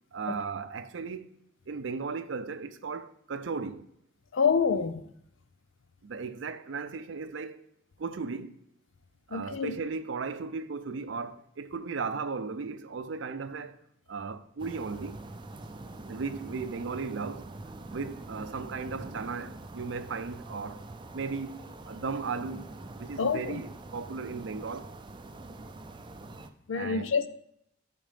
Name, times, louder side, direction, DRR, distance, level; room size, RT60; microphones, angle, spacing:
voice 1, 0.1-1.3 1.7-3.9 6.0-7.6 8.0-8.6 9.3-13.8 14.1-15.2 16.1-17.5 17.9-20.8 21.1-22.7 23.0-24.9 26.7-27.1, right 4 dB, 75° right, 0.5 m, -36 dB
voice 2, 4.3-5.0 9.3-9.7 23.2-23.6 26.7-27.3, left 5 dB, 90° left, 0.5 m, -27 dB
sound 1, 14.6-26.5, right 2 dB, 25° right, 0.4 m, -44 dB
11.5 x 4.2 x 3.4 m
head